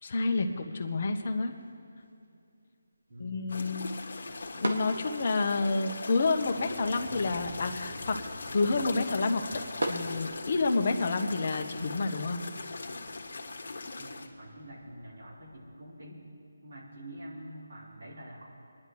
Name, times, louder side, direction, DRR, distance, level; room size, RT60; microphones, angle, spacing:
voice 1, 0.0-1.5 3.2-3.9 4.6-8.2 8.5-9.6 9.9-12.4, left 3 dB, 40° left, 5 dB, 1.1 m, -29 dB
sound 1, 0.9-10.9, right 1 dB, 85° right, 1.9 m, -42 dB
sound 2, 3.5-14.3, left 3 dB, 60° left, 1.5 m, -40 dB
sound 3, 6.2-15.8, left 2 dB, 25° left, 1.5 m, -52 dB
voice 2, 14.0-16.2 16.6-18.5, right 1 dB, 65° right, -5 dB, 3.9 m, -46 dB
28.0 x 10.5 x 3.1 m, 2.5 s
figure-of-eight pair, 170°, 0 cm